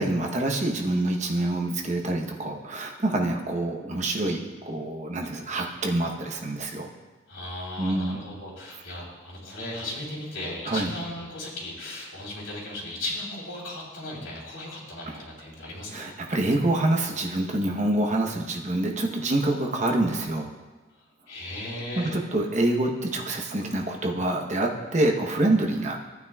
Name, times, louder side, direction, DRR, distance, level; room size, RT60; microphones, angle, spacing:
voice 1, 0.0-6.9 7.8-8.2 10.7-10.9 15.1-15.2 15.9-20.5 22.0-26.0, right 1 dB, 35° right, 1 dB, 0.9 m, -26 dB
voice 2, 7.3-15.9 21.0-22.1, left 1 dB, 75° left, -5 dB, 3.3 m, -36 dB
14.5 x 9.2 x 2.3 m, 1.3 s
head